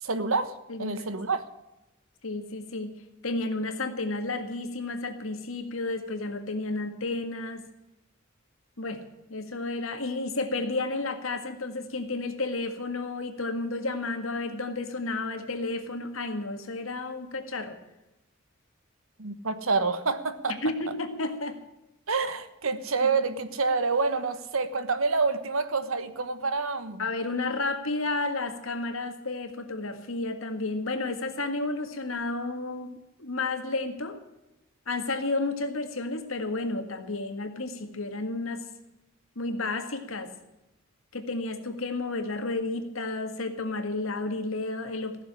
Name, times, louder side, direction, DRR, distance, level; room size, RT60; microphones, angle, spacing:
voice 1, 0.0-0.5 0.8-1.4 19.2-20.6 22.1-27.0, right 4 dB, 85° right, 12 dB, 1.3 m, -27 dB
voice 2, 0.7-1.1 2.2-2.9 3.2-7.7 8.8-9.0 9.3-17.8 20.5-21.6 23.0-23.1 27.0-34.2 34.9-38.6 39.4-40.3 41.1-45.2, left 2 dB, 80° left, 7 dB, 1.9 m, -32 dB
16.0 x 7.0 x 10.0 m, 0.94 s
head